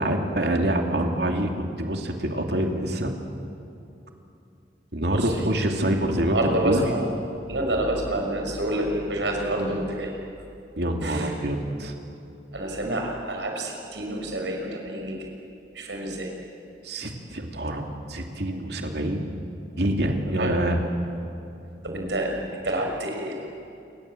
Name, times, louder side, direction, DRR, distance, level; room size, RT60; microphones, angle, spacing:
voice 1, 0.0-1.5 1.8-3.2 4.9-6.8 10.8-11.9 16.8-17.8 18.1-19.3 19.8-20.8, right 1 dB, 65° right, 3 dB, 2.8 m, -26 dB
voice 2, 5.1-5.5 6.2-7.1 7.5-10.1 11.0-11.3 12.5-15.3 15.7-16.3 20.2-20.6 21.8-23.3, right 1 dB, 90° right, 2 dB, 5.9 m, -28 dB
28.0 x 24.0 x 7.8 m, 2.7 s
head